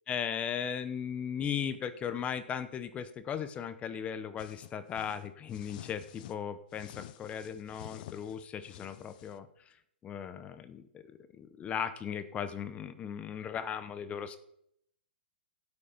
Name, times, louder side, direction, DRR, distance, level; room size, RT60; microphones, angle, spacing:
voice 1, 0.1-9.5 10.0-11.0 11.4-14.4, left 8 dB, 20° left, 12 dB, 0.8 m, -37 dB
sound 1, 4.4-6.4 6.7-9.4, left 14 dB, 50° left, 0.6 m, -50 dB
12.5 x 8.4 x 5.2 m, 0.73 s
hypercardioid pair, 125°, 6 cm